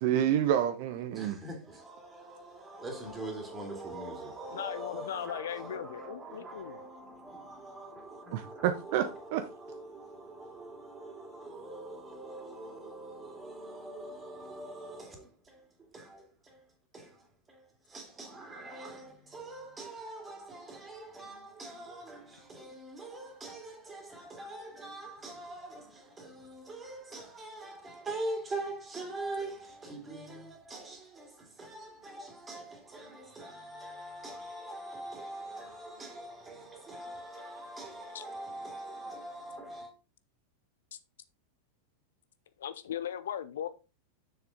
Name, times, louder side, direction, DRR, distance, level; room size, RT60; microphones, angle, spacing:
voice 1, 0.0-1.4 8.3-9.4, right 10 dB, 50° right, 0.7 m, -28 dB
voice 2, 1.1-15.6 15.9-16.6 16.9-17.2 17.5-17.6 17.9-39.9, right 2 dB, 15° right, 2.5 m, -43 dB
voice 3, 4.5-6.8 25.2-25.3 38.1-38.2 42.6-43.7, left 10 dB, 60° left, 0.5 m, -38 dB
6.8 x 6.7 x 3.6 m
figure-of-eight pair, 90°, 0 cm